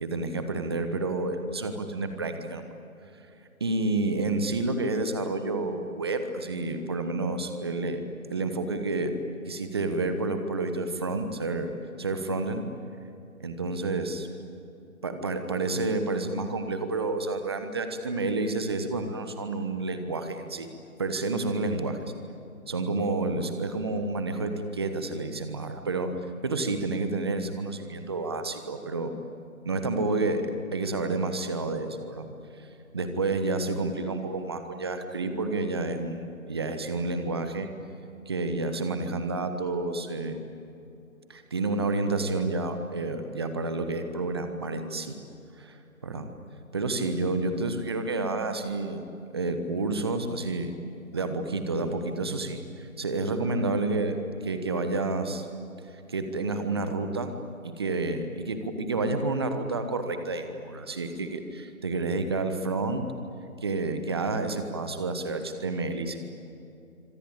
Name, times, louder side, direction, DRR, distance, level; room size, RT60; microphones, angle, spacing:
voice 1, 0.0-2.7 3.6-9.1 9.5-11.7 12.0-12.7 13.4-14.3 15.0-20.7 21.0-22.1 22.7-26.1 26.4-29.1 29.6-32.3 32.9-37.7 38.3-40.4 41.3-45.2 45.6-45.8 46.0-46.3 46.7-49.0 49.3-50.7 51.1-54.2 54.4-55.5 55.9-57.3 57.6-63.1 63.6-66.2, right 3 dB, 20° right, 8 dB, 1.1 m, -29 dB
26.5 x 25.5 x 8.7 m, 2.8 s
figure-of-eight pair, 160°, 42 cm